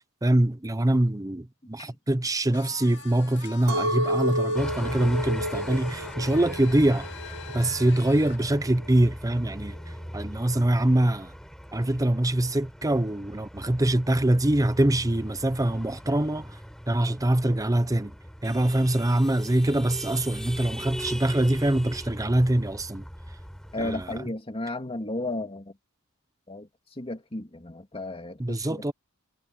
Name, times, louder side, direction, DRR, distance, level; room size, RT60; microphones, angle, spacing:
voice 1, 0.2-7.1 7.5-9.8 10.1-11.3 11.7-16.6 16.9-18.1 18.4-23.0 23.8-24.1 28.4-28.9, right 1 dB, 15° right, 0.8 m, -24 dB
sound 1, 2.5-8.4, left 7 dB, 55° left, 2.2 m, -45 dB
Chink clink, 3.7-8.9, equal, 70° right, 1.6 m, -31 dB
sound 2, 4.5-24.2, equal, ahead, 4.9 m, -40 dB
voice 2, 23.7-25.7 26.5-26.7 27.0-28.8, left 2 dB, 25° left, 2.3 m, -34 dB
head